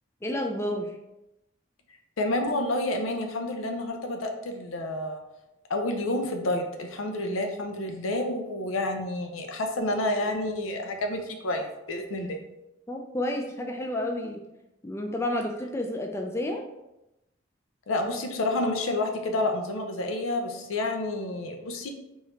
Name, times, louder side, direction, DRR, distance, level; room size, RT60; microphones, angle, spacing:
voice 1, 0.2-1.0 12.9-14.4 14.8-16.6, left 1 dB, 15° left, 2 dB, 0.3 m, -30 dB
voice 2, 2.2-5.2 5.7-12.4 17.9-21.9, left 1 dB, 90° left, 4 dB, 0.6 m, -29 dB
3.6 x 3.1 x 3.2 m, 0.92 s
head